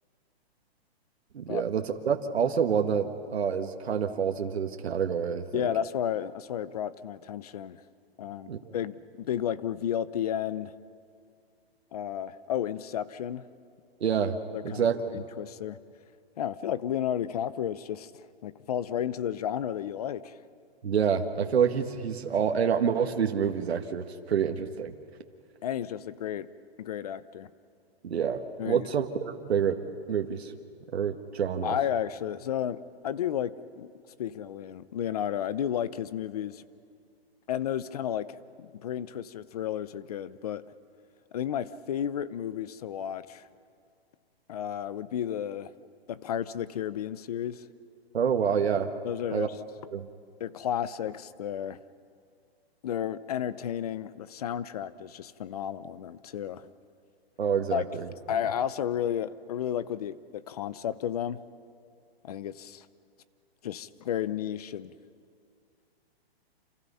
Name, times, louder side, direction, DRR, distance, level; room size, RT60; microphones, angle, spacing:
voice 1, 1.3-5.7 8.5-8.8 14.0-14.4 14.6-15.2 20.8-24.9 28.0-29.8 30.1-30.5 30.9-31.8 48.1-48.9 49.3-49.5 49.9-50.1 57.4-58.1, right 7 dB, 85° right, 5 dB, 1.8 m, -27 dB
voice 2, 5.5-7.8 8.2-10.7 11.9-13.5 14.5-14.9 15.1-15.8 16.4-18.1 18.4-20.4 25.6-26.5 26.8-27.5 28.6-28.9 31.6-33.9 34.2-36.6 37.5-40.6 41.3-43.4 44.5-45.7 46.1-47.6 49.0-49.5 50.4-51.8 52.8-56.7 57.7-57.8 58.3-61.4 62.2-62.9 63.6-64.9, left 10 dB, 40° left, 16 dB, 0.7 m, -32 dB
29.5 x 28.0 x 5.7 m, 2.3 s
hypercardioid pair, 165°, 31 cm